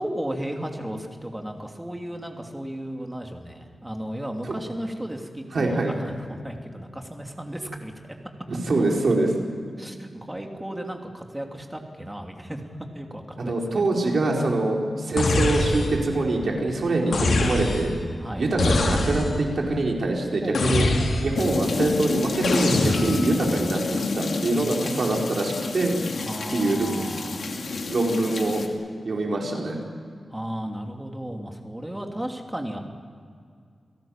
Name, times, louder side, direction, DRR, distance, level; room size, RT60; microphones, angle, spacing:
voice 1, 0.0-8.2 9.8-12.6 12.9-13.8 17.1-17.3 18.2-18.5 20.4-20.9 26.2-27.5 30.3-32.8, right 1 dB, 10° right, 2 dB, 2.8 m, -34 dB
voice 2, 5.5-5.9 8.5-9.3 13.4-17.9 18.4-20.9 21.2-26.0 26.5-26.9 27.9-28.6 29.0-29.8, right 2 dB, 60° right, 0 dB, 4.6 m, -24 dB
sound 1, 15.2-16.1 17.1-18.0 18.6-19.4 20.5-21.5 22.4-23.3, left 2 dB, 85° left, 3.8 m, -24 dB
sound 2, 21.4-28.7, left 3 dB, 65° left, 2.6 m, -29 dB
29.0 x 17.5 x 7.4 m, 2.2 s
wide cardioid pair, 125°, 0 cm